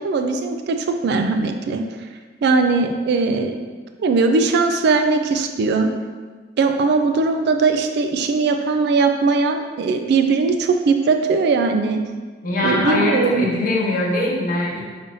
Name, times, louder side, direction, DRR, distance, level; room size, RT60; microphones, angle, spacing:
voice 1, 0.0-1.8 2.4-3.6 4.0-5.9 6.6-12.0 12.6-13.5, right 4 dB, 60° right, 6 dB, 0.3 m, -19 dB
voice 2, 12.4-14.8, left 1 dB, 45° left, -4 dB, 1.0 m, -21 dB
5.3 x 3.4 x 2.6 m, 1.5 s
head